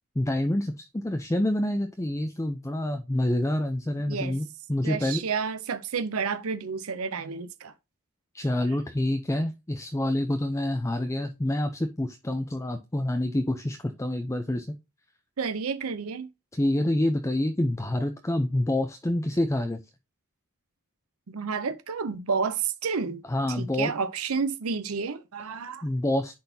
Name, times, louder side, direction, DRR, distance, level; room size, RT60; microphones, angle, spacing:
voice 1, 0.2-5.2 8.3-14.7 16.5-19.8 23.3-23.9 25.8-26.4, left 1 dB, 15° left, 0.5 m, -27 dB
voice 2, 4.8-7.7 15.4-16.3 21.3-23.2 23.6-25.8, right 5 dB, 75° right, 0.6 m, -30 dB
10.5 x 4.1 x 2.7 m
head